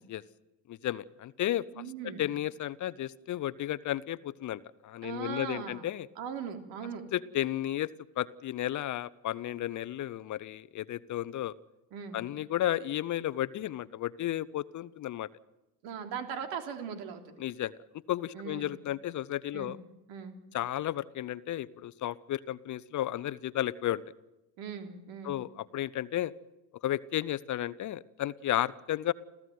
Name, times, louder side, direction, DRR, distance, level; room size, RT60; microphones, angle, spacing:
voice 1, 0.7-1.8 2.2-6.1 7.1-7.9 8.2-11.6 12.1-15.3 17.4-17.7 18.1-19.8 20.5-24.0 25.2-26.3 26.8-29.1, left 13 dB, 40° left, 17 dB, 0.7 m, -33 dB
voice 2, 1.7-2.2 5.0-5.9 6.1-7.0 11.9-12.2 15.8-17.3 18.3-18.7 19.5-19.8 20.1-20.4 24.6-25.4, right 7 dB, 70° right, 5 dB, 3.5 m, -39 dB
28.5 x 15.0 x 9.4 m, 0.96 s
supercardioid pair, 105°, 45 cm